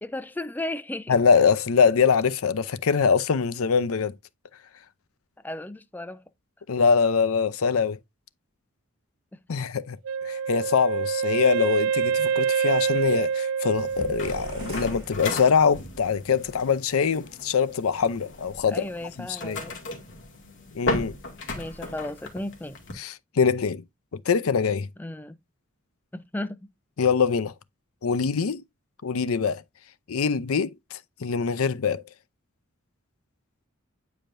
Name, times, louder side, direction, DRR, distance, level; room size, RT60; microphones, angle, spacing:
voice 1, 0.0-1.1 5.4-6.2 18.7-19.8 21.5-22.8 25.0-25.4 26.1-26.6, left 1 dB, 10° left, 0.4 m, -34 dB
voice 2, 1.1-4.1 6.7-8.0 9.5-10.0 10.2-18.8 19.2-19.6 20.7-21.1 23.0-23.8 24.3-24.9 27.0-27.5 28.0-28.6 29.0-29.6 30.1-32.0, left 6 dB, 75° left, 0.5 m, -23 dB
Wind instrument woodwind instrument, 10.0-14.9, right 6 dB, 80° right, 0.3 m, -26 dB
sound 1, 13.7-22.9, left 2 dB, 60° left, 2.1 m, -36 dB
sound 2, 14.2-16.1, right 1 dB, 25° right, 2.9 m, -43 dB
8.9 x 5.0 x 2.5 m
head